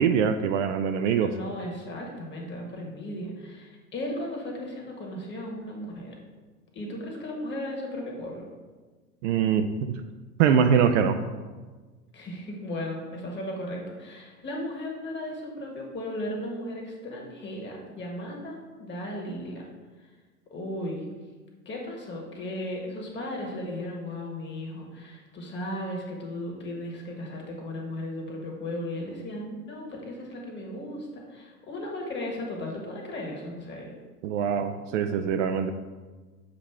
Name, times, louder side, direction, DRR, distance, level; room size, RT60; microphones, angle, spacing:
voice 1, 0.0-1.3 9.2-10.0 10.4-11.2 34.2-35.7, right 7 dB, 55° right, 7 dB, 0.5 m, -23 dB
voice 2, 1.2-6.2 6.7-8.5 12.1-19.6 20.5-21.0 21.6-33.9, left 1 dB, 25° left, 0 dB, 1.5 m, -36 dB
7.5 x 2.9 x 4.4 m, 1.3 s
figure-of-eight pair, 85°, 46 cm